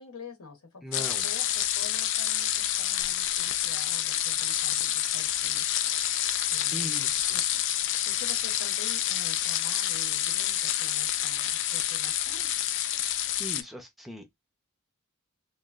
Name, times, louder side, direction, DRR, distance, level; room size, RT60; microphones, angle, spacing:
voice 1, 0.0-5.6 6.5-7.6 8.0-12.5, left 5 dB, 80° left, 1.0 m, -47 dB
voice 2, 0.8-1.3 6.7-7.4 13.4-14.3, equal, ahead, 0.5 m, -39 dB
sound 1, 0.9-13.6, left 11 dB, 60° left, 0.3 m, -28 dB
3.0 x 2.2 x 2.3 m
head